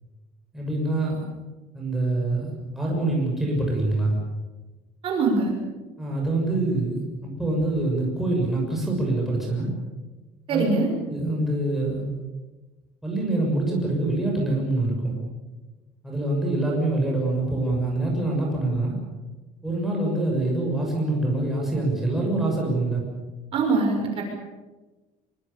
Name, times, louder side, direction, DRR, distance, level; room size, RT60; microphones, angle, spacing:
voice 1, 0.5-1.3 1.7-4.2 6.0-9.7 10.5-10.7 11.1-12.1 13.0-15.1 16.0-18.9 19.6-23.0, right 2 dB, ahead, -3 dB, 6.6 m, -25 dB
voice 2, 5.0-5.5 10.5-10.9 23.5-24.2, right 3 dB, 40° right, 1 dB, 6.3 m, -22 dB
25.0 x 25.0 x 7.2 m, 1.2 s
cardioid pair, 175°, 14 cm